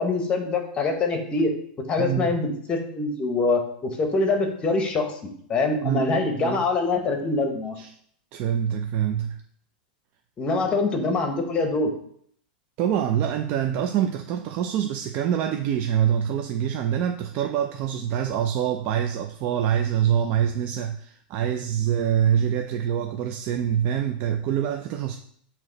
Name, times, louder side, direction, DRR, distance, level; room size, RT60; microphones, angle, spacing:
voice 1, 0.0-1.5 1.9-5.2 5.5-7.7 10.4-11.9, left 3 dB, 20° left, 5 dB, 1.0 m, -24 dB
voice 2, 2.0-2.3 5.8-6.6 7.8-7.9 8.3-9.4 12.8-25.2, right 9 dB, 40° right, 5 dB, 0.4 m, -25 dB
8.2 x 2.9 x 3.9 m, 0.64 s
supercardioid pair, 150°, 5 cm